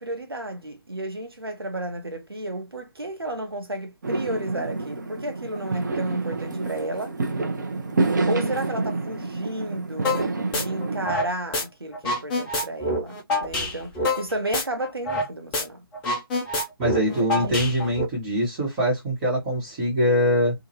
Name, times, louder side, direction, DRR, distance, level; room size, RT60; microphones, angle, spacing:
voice 1, 0.0-7.2 8.3-15.8 16.9-17.8, right 1 dB, 80° right, 1.0 m, -32 dB
Fireworks, 4.0-11.1, right 3 dB, 50° right, 0.8 m, -28 dB
sound 1, 10.0-10.2 10.5-11.6 11.9-15.3 15.5-15.6 15.9-18.0, left 2 dB, 5° left, 0.3 m, -26 dB
voice 2, 16.8-20.5, equal, 20° right, 1.3 m, -23 dB
2.9 x 2.4 x 2.8 m
figure-of-eight pair, 150°, 13 cm